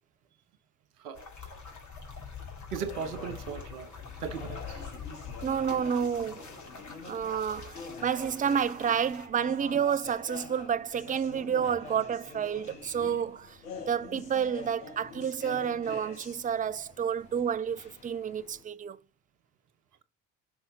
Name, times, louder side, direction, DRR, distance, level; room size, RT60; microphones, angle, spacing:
sound 1, 1.1-9.3, left 5 dB, 40° left, 2.3 m, -44 dB
voice 1, 2.7-4.9 13.0-13.2, right 7 dB, 85° right, 1.0 m, -38 dB
sound 2, 2.9-18.6, left 4 dB, 75° left, 1.6 m, -46 dB
voice 2, 5.4-6.4 7.0-13.6 13.9-19.0, right 8 dB, 20° right, 0.4 m, -30 dB
5.6 x 5.5 x 3.6 m
figure-of-eight pair, 45°, 45 cm